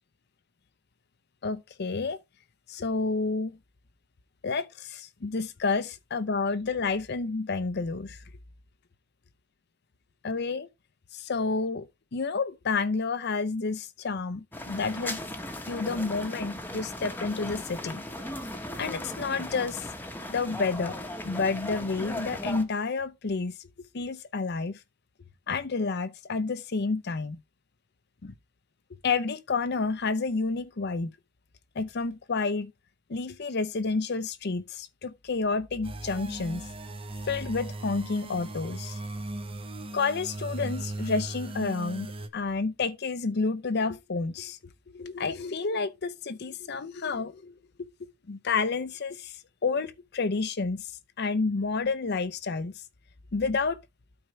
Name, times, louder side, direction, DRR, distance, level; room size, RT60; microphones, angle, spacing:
voice 1, 1.4-2.2 2.7-3.6 4.4-8.2 10.2-10.7 11.1-11.8 12.1-15.2 15.7-18.0 18.8-19.8 20.3-21.0 21.2-23.5 23.9-24.8 25.5-27.4 28.2-28.3 29.0-31.1 31.8-32.7 33.1-36.6 37.3-39.0 39.9-44.6 44.9-47.5 48.3-49.3 49.6-50.8 51.2-52.7 53.3-53.8, left 4 dB, 55° left, 0.6 m, -30 dB
sound 1, 14.5-22.6, left 1 dB, 10° left, 1.0 m, -37 dB
sound 2, 35.8-42.3, right 2 dB, 30° right, 0.9 m, -38 dB
12.5 x 4.5 x 3.2 m
head